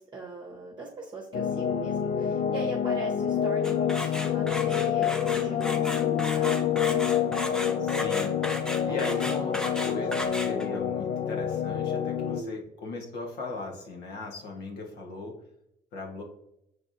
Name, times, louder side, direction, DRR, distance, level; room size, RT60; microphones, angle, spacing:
voice 1, 0.0-6.8 8.9-9.1 9.6-9.8 12.1-12.5, right 3 dB, 25° right, -3 dB, 1.0 m, -40 dB
sound 1, 1.3-12.4, left 9 dB, 50° left, 0.4 m, -27 dB
sound 2, 3.6-10.8, equal, 5° left, 0.6 m, -35 dB
voice 2, 7.8-15.4 15.9-16.2, left 3 dB, 75° left, 0 dB, 1.3 m, -38 dB
6.0 x 3.4 x 2.7 m, 0.80 s
cardioid pair, 110°, 17 cm